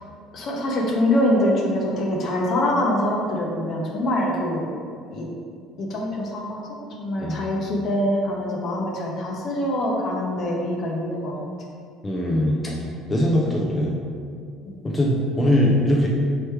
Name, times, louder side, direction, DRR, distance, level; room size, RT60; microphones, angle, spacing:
voice 1, 0.3-4.7 5.1-5.3 5.8-6.7 7.0-11.3 13.2-13.3 14.6-14.8, left 1 dB, 55° left, -1 dB, 0.8 m, -24 dB
voice 2, 12.0-13.9 14.8-16.1, left 1 dB, 20° left, -3 dB, 0.6 m, -21 dB
3.4 x 3.0 x 4.5 m, 2.2 s
supercardioid pair, 90°, 0 cm